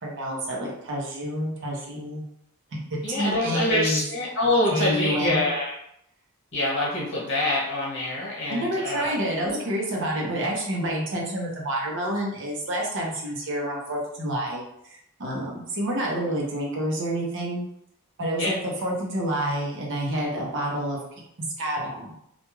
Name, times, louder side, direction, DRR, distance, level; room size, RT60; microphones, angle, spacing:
voice 1, 0.0-2.2 2.7-4.0 4.7-5.4 8.5-17.6 18.2-21.0 21.6-22.1, right 1 dB, 55° right, -2 dB, 0.7 m, -28 dB
voice 2, 3.0-5.7 6.5-9.1 9.4-9.6 18.3-18.5, left 2 dB, 55° left, -5 dB, 1.1 m, -25 dB
2.4 x 2.2 x 3.0 m, 0.76 s
head